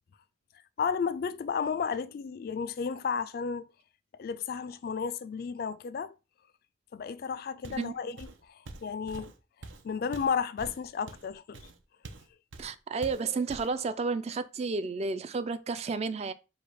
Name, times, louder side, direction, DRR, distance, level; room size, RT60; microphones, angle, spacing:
voice 1, 0.8-3.7 4.2-6.1 6.9-9.3 9.8-11.6, left 6 dB, 50° left, 0.3 m, -33 dB
Walk footsteps, 7.6-7.9 8.2-12.3 12.5-12.7 13.0-13.8, right 2 dB, 85° right, 0.6 m, -45 dB
voice 2, 12.6-16.3, right 4 dB, 35° right, 0.3 m, -32 dB
4.8 x 2.2 x 4.9 m
head